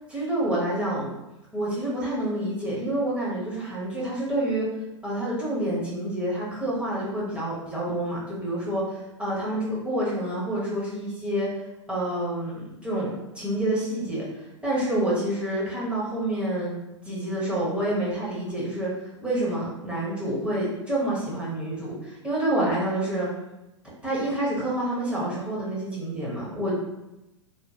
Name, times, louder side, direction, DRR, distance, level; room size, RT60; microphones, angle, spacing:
voice 1, 0.1-1.1 1.5-4.7 5.0-11.5 11.9-16.7 17.0-23.3 24.0-26.7, right 1 dB, 5° right, -7 dB, 1.0 m, -28 dB
2.9 x 2.1 x 2.8 m, 0.96 s
hypercardioid pair, 105°, 16 cm